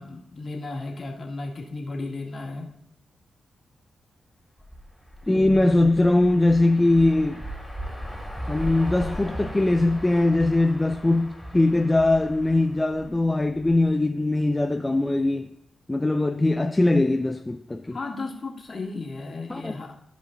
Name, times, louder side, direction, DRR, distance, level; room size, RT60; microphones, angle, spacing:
voice 1, 0.0-2.7 17.9-19.9, left 3 dB, 45° left, 1.9 m, -34 dB
sound 1, 4.6-13.8, equal, 5° right, 2.8 m, -38 dB
voice 2, 5.3-7.4 8.5-15.5 15.9-18.0 19.5-19.7, left 2 dB, 15° left, 0.4 m, -21 dB
14.5 x 5.1 x 2.6 m
cardioid pair, 75°, 0 cm